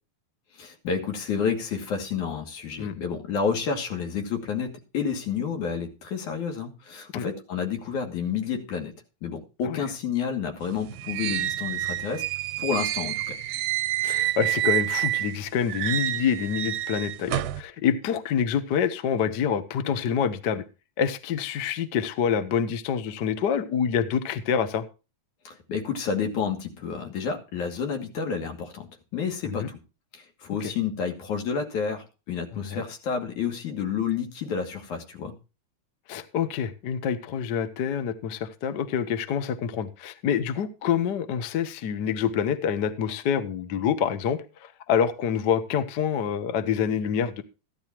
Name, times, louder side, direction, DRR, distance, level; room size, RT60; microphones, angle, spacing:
voice 1, 0.6-8.9 9.2-12.3 12.6-13.4 25.5-29.8 30.1-35.3, left 6 dB, 75° left, 3.9 m, -30 dB
sound 1, 10.6-15.4 15.7-17.6, right 15 dB, 85° right, 2.2 m, -28 dB
voice 2, 14.0-20.6 21.0-24.8 29.4-29.7 30.6-30.7 32.5-32.8 36.1-47.4, left 8 dB, 60° left, 1.1 m, -27 dB
14.5 x 12.0 x 3.0 m
omnidirectional pair, 3.4 m